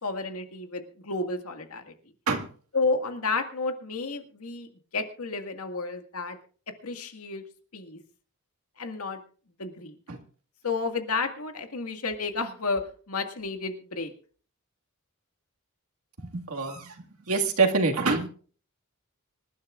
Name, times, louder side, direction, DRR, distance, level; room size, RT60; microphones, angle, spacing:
voice 1, 0.0-1.9 2.7-6.4 6.8-7.4 7.7-8.0 8.8-9.2 9.6-10.0 10.6-14.1, left 3 dB, 85° left, 6 dB, 1.9 m, -31 dB
voice 2, 16.2-16.9 17.3-18.3, right 4 dB, 80° right, 3 dB, 2.0 m, -25 dB
25.5 x 12.0 x 2.5 m, 0.42 s
head